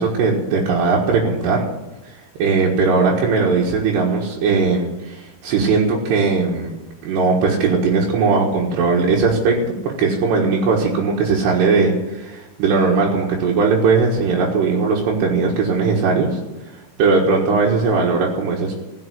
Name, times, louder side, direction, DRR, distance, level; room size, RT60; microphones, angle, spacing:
voice 1, 0.0-1.6 2.4-6.8 7.0-16.4 17.0-18.8, right 4 dB, 80° right, -3 dB, 3.7 m, -18 dB
16.0 x 7.2 x 8.2 m, 1.1 s
omnidirectional pair, 4.8 m